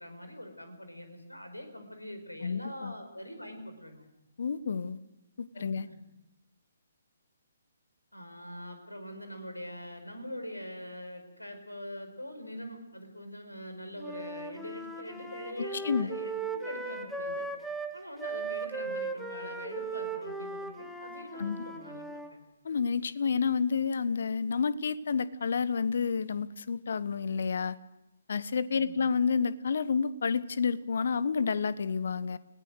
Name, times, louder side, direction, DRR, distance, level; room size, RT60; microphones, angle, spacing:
voice 1, 0.0-4.1 5.5-5.9 8.1-17.5 17.9-22.0 22.3-22.5 28.7-29.1, equal, 85° left, 7 dB, 5.0 m, -43 dB
voice 2, 2.4-2.9 4.4-5.0 5.4-5.9 15.6-16.1 21.4-21.6 22.6-27.8 28.3-32.4, left 5 dB, 55° left, 17 dB, 1.1 m, -30 dB
Wind instrument woodwind instrument, 14.0-22.3, right 3 dB, ahead, 1.8 m, -38 dB
30.0 x 18.0 x 6.5 m, 0.90 s
figure-of-eight pair, 135°, 0 cm